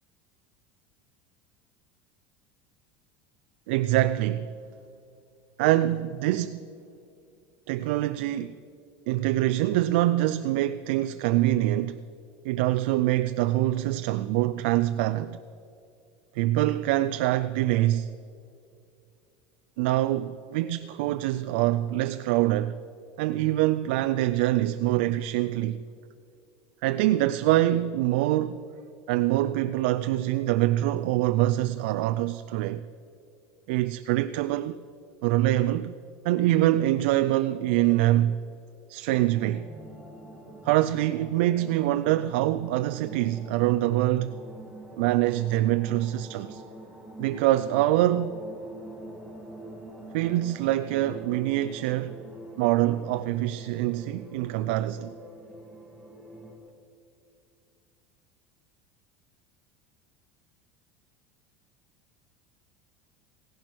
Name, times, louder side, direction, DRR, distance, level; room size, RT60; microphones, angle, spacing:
voice 1, 3.7-4.5 5.6-6.7 7.7-8.6 9.1-12.0 12.4-15.4 16.3-18.1 19.8-22.8 23.2-25.8 26.8-28.7 29.1-32.8 33.7-34.8 35.2-36.0 36.2-38.4 38.9-39.7 40.6-44.4 45.0-46.6 47.2-48.4 50.1-52.1 52.6-55.1, right 15 dB, 70° right, 0.4 m, -25 dB
sound 1, 39.1-56.6, right 1 dB, 5° left, 2.0 m, -45 dB
16.5 x 10.5 x 6.2 m
cardioid pair, 170°, 6 cm